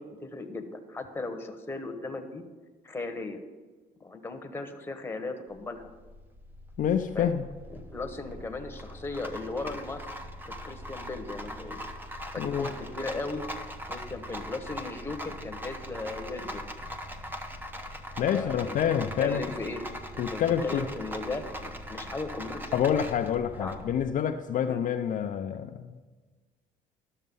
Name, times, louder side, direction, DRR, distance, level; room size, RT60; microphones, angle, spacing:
voice 1, 0.0-2.4 2.8-3.4 4.0-5.9 7.1-7.4 7.7-10.1 10.6-11.8 12.3-13.5 13.9-16.6 18.3-18.8 19.2-19.8 20.1-22.7 23.6-23.9 24.7-24.8, left 3 dB, 15° left, 5 dB, 1.1 m, -37 dB
Rattle, 5.5-24.1, equal, 10° right, 0.9 m, -41 dB
voice 2, 6.8-7.4 12.4-12.7 18.2-19.4 20.2-20.8 22.7-26.0, left 9 dB, 50° left, 5 dB, 0.5 m, -27 dB
12.5 x 6.6 x 5.4 m, 1.3 s
cardioid pair, 110°, 17 cm